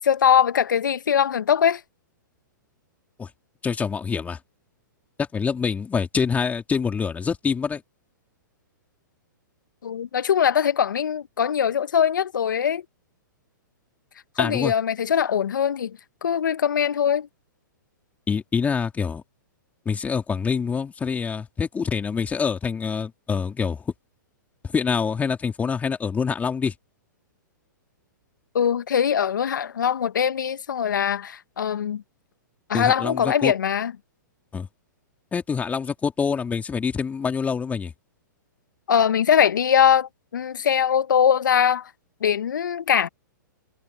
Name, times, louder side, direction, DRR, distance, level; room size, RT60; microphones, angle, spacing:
voice 1, 0.0-1.8 9.8-12.8 14.4-17.3 28.5-32.0 32.7-33.9 38.9-41.9 42.2-43.1, left 8 dB, 75° left, 1.6 m, -21 dB
voice 2, 3.6-4.4 5.2-7.8 14.4-14.7 18.3-19.2 19.9-23.9 24.7-26.7 32.7-33.5 34.5-34.7 35.3-37.9, left 6 dB, 15° left, 3.7 m, -25 dB
hypercardioid pair, 120°, 10 cm